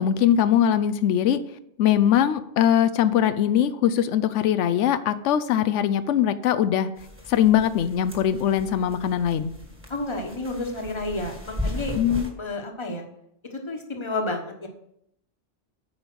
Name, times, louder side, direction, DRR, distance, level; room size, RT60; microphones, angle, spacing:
voice 1, 0.0-1.4 1.8-6.9 7.3-9.5 11.9-12.3, left 10 dB, 90° left, 11 dB, 0.9 m, -21 dB
sound 1, 7.0-12.3, left 1 dB, 10° right, 1.5 m, -37 dB
voice 2, 9.9-11.9 12.2-13.0 13.5-14.7, left 2 dB, 25° left, 3 dB, 1.3 m, -31 dB
9.1 x 5.2 x 6.1 m, 0.75 s
omnidirectional pair, 1.2 m